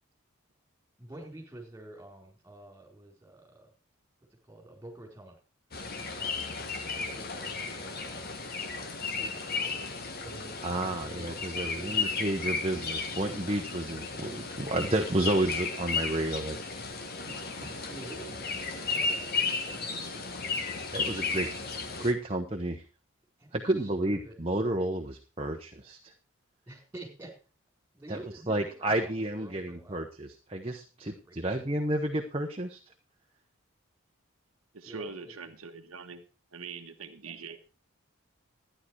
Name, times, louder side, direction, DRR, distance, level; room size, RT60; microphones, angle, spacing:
voice 1, 1.0-3.7 4.4-5.4 6.2-9.9 10.2-11.3 11.7-12.3 17.9-21.6 23.4-24.5 26.7-27.3 27.9-30.1 31.0-31.6 34.8-35.3 37.2-37.3, right 2 dB, 10° right, 0 dB, 4.4 m, -49 dB
sound 1, 5.7-22.1, left 4 dB, 45° left, 1.4 m, -34 dB
voice 2, 10.6-16.6 17.3-17.7 20.9-21.5 22.0-22.8 23.5-26.0 28.1-28.2 28.5-32.8, right 1 dB, 25° right, 3 dB, 1.0 m, -31 dB
voice 3, 34.7-36.2 36.5-37.6, right 4 dB, 80° right, 6 dB, 1.1 m, -42 dB
12.5 x 10.0 x 4.6 m, 0.34 s
head